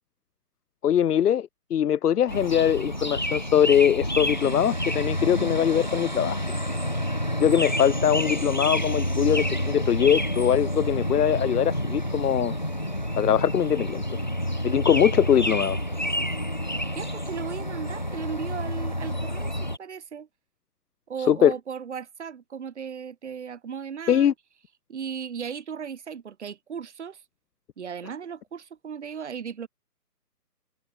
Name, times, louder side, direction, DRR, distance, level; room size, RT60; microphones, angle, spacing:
voice 1, 0.8-6.4 7.4-12.5 13.2-14.2 14.6-15.8 21.3-21.5 24.1-24.3, left 9 dB, 70° left, 0.6 m, -22 dB
sound 1, 2.3-19.8, equal, 30° left, 0.5 m, -29 dB
voice 2, 16.9-20.3 21.1-24.3 24.9-27.2 27.8-29.7, right 7 dB, 45° right, 1.5 m, -36 dB
hypercardioid pair, 160°, 48 cm